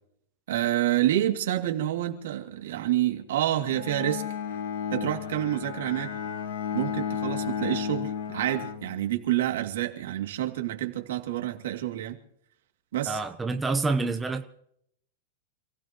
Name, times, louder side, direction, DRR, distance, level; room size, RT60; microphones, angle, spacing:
voice 1, 0.5-4.3 4.9-6.1 6.7-12.2 12.9-13.2, right 13 dB, 75° right, 2.5 m, -28 dB
Bowed string instrument, 3.7-9.5, left 8 dB, 75° left, 1.7 m, -33 dB
voice 2, 13.1-14.4, right 3 dB, 10° right, 0.9 m, -27 dB
28.5 x 16.0 x 3.1 m
supercardioid pair, 150°, 0 cm